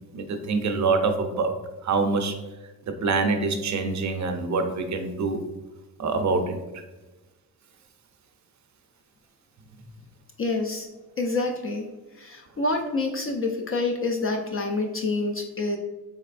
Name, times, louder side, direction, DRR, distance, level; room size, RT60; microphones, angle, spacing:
voice 1, 0.1-1.5 1.8-2.3 2.9-5.4 6.0-6.6, right 4 dB, 45° right, 6 dB, 0.5 m, -25 dB
voice 2, 10.4-10.9 11.2-11.9 12.2-15.8, left 3 dB, 35° left, 2 dB, 0.4 m, -27 dB
4.1 x 3.0 x 2.4 m, 1.1 s
cardioid pair, 85°, 39 cm